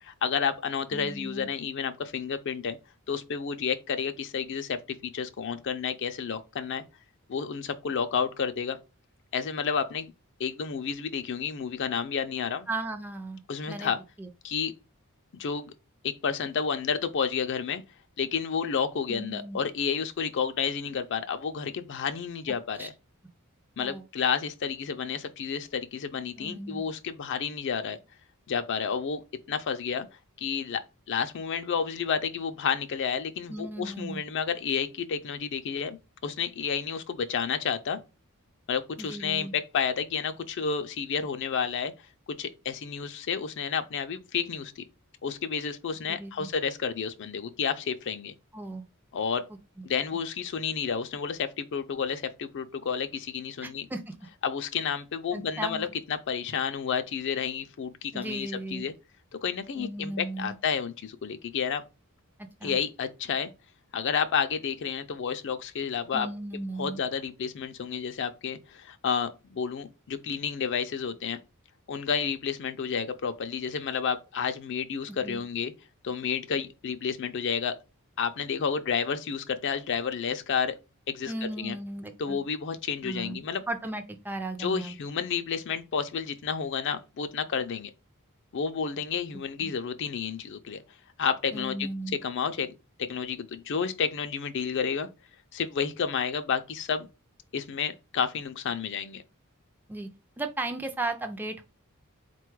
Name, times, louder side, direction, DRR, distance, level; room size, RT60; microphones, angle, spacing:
voice 1, 0.0-2.8 3.1-6.8 7.3-8.8 9.3-10.1 10.4-12.7 13.5-14.0 14.4-14.7 15.3-15.7 16.0-17.8 18.2-22.9 23.8-28.0 28.5-29.2 29.5-30.1 30.4-30.8 31.1-36.0 36.2-38.0 38.7-41.9 42.4-44.8 45.2-48.3 49.1-49.4 49.8-53.9 54.4-58.9 59.4-61.8 62.6-63.5 63.9-66.3 66.8-71.4 71.9-75.7 76.0-77.8 78.2-80.8 81.1-81.8 82.2-83.6 84.6-87.9 88.5-90.8 91.2-91.9 92.2-92.7 93.0-95.1 95.5-97.1 97.5-99.2, left 6 dB, 55° left, 0.4 m, -30 dB
voice 2, 0.9-1.5 12.7-13.4 13.7-13.9 14.2-14.3 19.1-19.6 22.8-22.9 23.8-24.0 26.4-26.8 33.5-34.2 39.0-39.5 46.1-46.5 48.5-48.8 53.6-54.1 55.3-55.9 58.1-58.8 59.8-60.6 62.6-62.8 66.1-67.0 75.1-75.4 81.3-82.4 83.0-83.4 83.7-85.0 89.6-89.7 91.5-92.2 99.9-100.1 100.4-101.7, right 2 dB, 10° right, 0.4 m, -36 dB
4.1 x 2.3 x 4.5 m
head